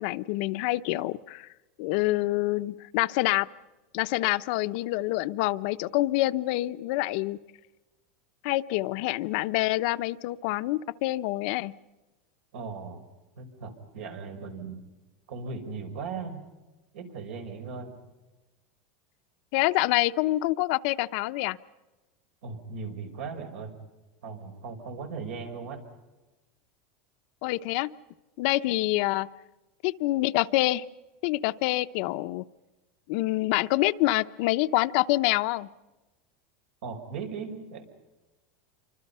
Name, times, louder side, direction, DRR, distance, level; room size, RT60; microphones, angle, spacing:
voice 1, 0.0-1.5 1.8-3.5 3.9-7.4 8.4-11.7 19.5-21.6 27.4-27.9 28.4-29.3 29.8-30.8 31.2-32.4 33.1-35.7, left 18 dB, 55° left, 12 dB, 0.7 m, -26 dB
voice 2, 12.5-13.0 13.4-14.8 15.3-16.4 16.9-17.9 22.4-23.7 24.2-25.8 36.8-37.8, right 5 dB, 85° right, 5 dB, 5.4 m, -38 dB
28.0 x 25.0 x 5.6 m, 1.1 s
supercardioid pair, 155°, 6 cm